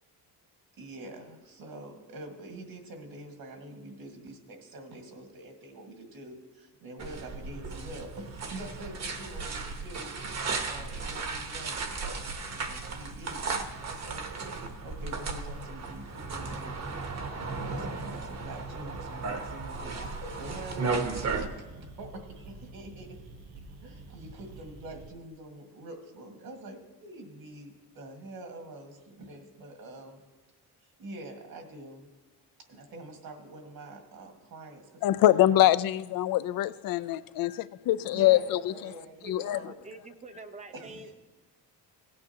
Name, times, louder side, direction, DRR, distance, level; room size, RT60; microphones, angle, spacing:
voice 1, 0.8-16.8 17.6-23.2 23.7-30.2 30.8-32.1 32.7-35.7 38.1-39.7 40.7-41.1, right 1 dB, 65° right, 3 dB, 1.9 m, -46 dB
sound 1, 7.0-21.5, right 4 dB, 45° right, 1.0 m, -35 dB
sound 2, 7.2-25.1, right 2 dB, 90° right, 1.2 m, -48 dB
voice 2, 35.0-38.9 39.2-39.6, left 13 dB, 65° left, 17 dB, 0.5 m, -24 dB
voice 3, 39.2-41.1, right 3 dB, 20° right, 8 dB, 0.7 m, -46 dB
16.5 x 8.6 x 2.9 m, 1.3 s
cardioid pair, 120°, 38 cm